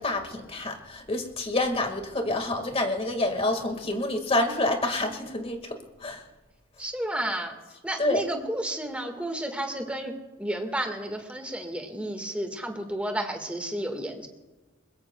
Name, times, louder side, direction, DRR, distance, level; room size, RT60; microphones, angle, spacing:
voice 1, 0.0-6.2 8.0-8.2, left 2 dB, 30° left, 5 dB, 1.8 m, -28 dB
voice 2, 6.8-7.5 7.8-14.3, right 1 dB, 5° right, 4 dB, 1.6 m, -32 dB
22.0 x 21.0 x 2.3 m, 1.2 s
head